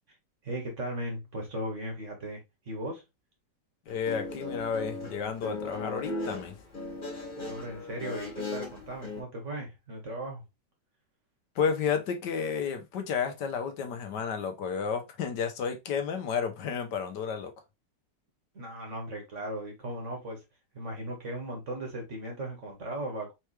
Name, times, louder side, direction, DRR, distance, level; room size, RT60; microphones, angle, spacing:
voice 1, 0.4-3.0 7.4-10.4 18.5-20.4 20.7-23.3, right 1 dB, 45° right, 1.7 m, -37 dB
voice 2, 3.9-6.5 11.6-17.5, left 6 dB, 75° left, 1.4 m, -31 dB
Guitar, 3.9-9.2, left 3 dB, 30° left, 2.0 m, -37 dB
4.6 x 3.3 x 3.1 m
omnidirectional pair, 1.9 m